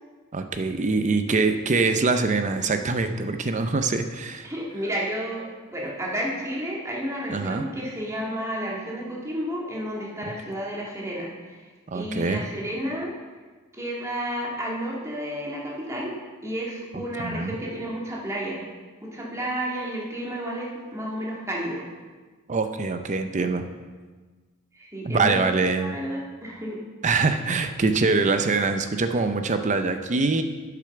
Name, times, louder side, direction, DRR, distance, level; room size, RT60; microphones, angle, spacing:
voice 1, 0.3-4.5 7.3-7.7 11.9-12.4 16.9-17.6 22.5-23.6 25.0-25.9 27.0-30.4, right 3 dB, 35° right, 8 dB, 0.5 m, -24 dB
voice 2, 4.4-11.6 11.9-13.1 13.7-16.1 16.4-18.6 19.0-21.8 24.7-26.8, equal, 15° right, -4 dB, 1.9 m, -31 dB
8.4 x 6.9 x 5.8 m, 1.4 s
head